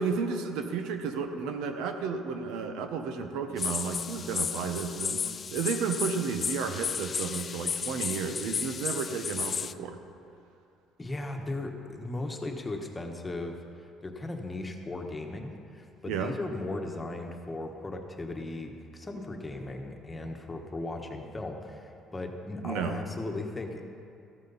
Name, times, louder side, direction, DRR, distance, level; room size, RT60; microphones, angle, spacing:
voice 1, 0.0-10.0 16.1-16.3 22.6-23.0, right 5 dB, 85° right, 7 dB, 1.0 m, -32 dB
sound 1, 3.6-9.7, left 6 dB, 35° left, 0.3 m, -33 dB
voice 2, 11.0-23.8, left 2 dB, 15° left, 3 dB, 1.2 m, -37 dB
14.5 x 12.5 x 4.1 m, 2.6 s
cardioid pair, 120°, 0 cm